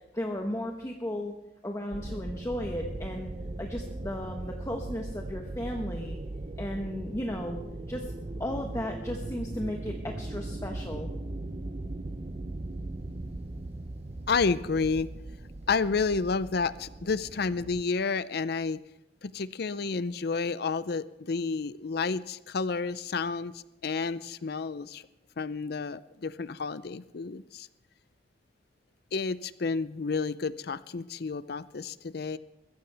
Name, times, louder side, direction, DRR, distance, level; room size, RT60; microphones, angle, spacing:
voice 1, 0.1-1.4 1.6-3.3 3.6-6.2 6.6-7.6 7.9-8.1 8.4-11.1, left 1 dB, 15° left, 2 dB, 1.1 m, -35 dB
sound 1, 1.9-17.8, right 2 dB, 35° right, 0.7 m, -39 dB
voice 2, 14.3-15.1 15.7-18.8 19.2-25.0 25.4-27.7 29.1-32.4, left 4 dB, 60° left, 16 dB, 0.5 m, -30 dB
22.0 x 15.0 x 3.4 m, 0.94 s
head